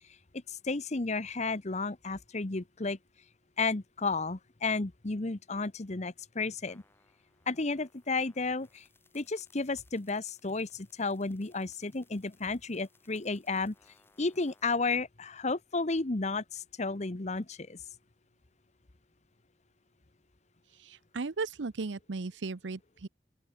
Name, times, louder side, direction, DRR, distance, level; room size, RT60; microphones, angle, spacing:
voice 1, 0.3-3.0 3.6-6.8 7.5-8.8 9.1-13.7 14.2-17.8, left 3 dB, 40° left, 1.0 m, -32 dB
sound 1, 6.7-14.7, left 3 dB, 15° left, 6.0 m, -67 dB
voice 2, 20.7-23.1, right 3 dB, 90° right, 0.7 m, -36 dB
open air
head